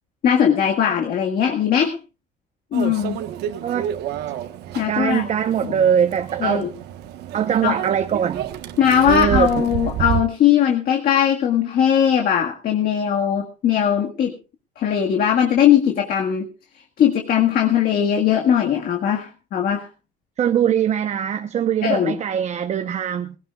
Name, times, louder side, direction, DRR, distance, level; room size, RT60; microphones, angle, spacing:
voice 1, 0.2-2.0 2.7-3.2 4.8-5.2 6.4-6.7 7.6-7.8 8.8-14.4 14.8-16.5 17.0-19.9 21.8-22.1, left 9 dB, 60° left, 1.8 m, -19 dB
Microwave oven, 2.7-10.2, right 9 dB, 80° right, 1.3 m, -29 dB
voice 2, 4.9-6.7 7.3-8.5 9.1-9.5 20.4-23.4, right 8 dB, 40° right, 1.0 m, -21 dB
20.0 x 17.5 x 2.4 m
cardioid pair, 135°, 17 cm